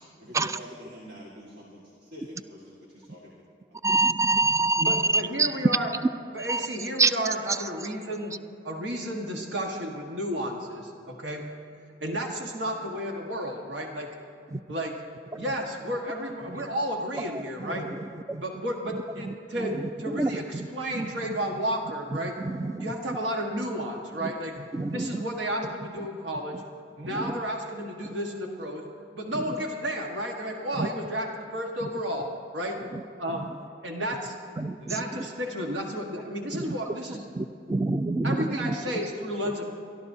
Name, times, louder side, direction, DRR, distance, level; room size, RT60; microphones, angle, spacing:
voice 1, 0.2-3.4 4.8-5.4 9.6-9.7, left 1 dB, 60° right, -5 dB, 1.8 m, -46 dB
voice 2, 3.8-5.5 6.4-6.6 7.0-7.1 7.5-7.6 14.5-14.6 15.3-15.4 16.5-16.6 17.3-18.4 19.2-20.7 20.9-21.1 22.1-22.2 22.4-22.9 24.2-24.3 24.7-25.2 27.1-27.3 28.0-28.1 29.3-29.4 30.8-30.9 31.8-31.9 32.9-33.0 33.3-33.5 34.6-35.0 36.5-36.8 37.4-38.9, right 3 dB, 15° right, 12 dB, 0.3 m, -27 dB
voice 3, 4.8-5.9 6.3-8.3 8.6-11.4 12.0-14.2 14.7-15.0 15.4-17.9 18.4-22.4 22.8-24.6 24.9-26.6 27.0-28.8 29.1-32.8 33.2-33.5 33.8-34.3 34.8-37.2 38.2-39.6, equal, 80° right, 1 dB, 1.5 m, -32 dB
23.5 x 13.0 x 2.7 m, 2.7 s
head